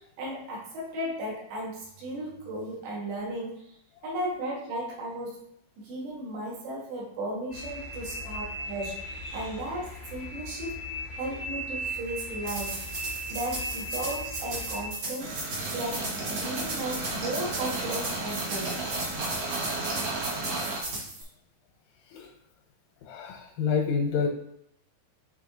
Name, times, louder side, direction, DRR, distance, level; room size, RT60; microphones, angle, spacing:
voice 1, 0.0-3.7 4.0-5.4 5.8-9.0 9.3-10.8 11.2-12.8 13.3-15.4 15.7-18.8, right 1 dB, 80° right, -4 dB, 4.1 m, -35 dB
sound 1, 7.5-14.9, equal, 20° left, 0.8 m, -37 dB
sound 2, 12.4-21.2, right 2 dB, 50° right, 1.3 m, -36 dB
sound 3, 15.2-20.8, right 2 dB, 65° right, 1.6 m, -33 dB
voice 2, 23.0-24.3, left 6 dB, 80° left, 2 dB, 2.0 m, -28 dB
9.1 x 3.4 x 3.8 m, 0.71 s
omnidirectional pair, 4.8 m